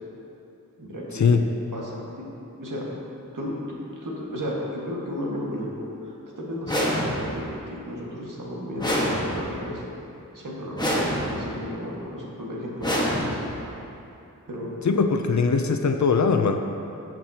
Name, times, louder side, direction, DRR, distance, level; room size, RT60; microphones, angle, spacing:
voice 1, 0.8-1.4 1.7-2.3 2.6-2.9 3.3-9.8 10.3-13.4 13.6-13.7 14.5-14.7, equal, 75° right, -4 dB, 1.9 m, -34 dB
sound 1, 6.7-7.5 8.8-9.7 10.8-11.6 12.8-13.7, equal, 15° left, 1.6 m, -26 dB
voice 2, 14.8-16.6, left 5 dB, 60° left, 6 dB, 0.6 m, -21 dB
14.0 x 7.5 x 2.9 m, 2.8 s
wide cardioid pair, 60°, 32 cm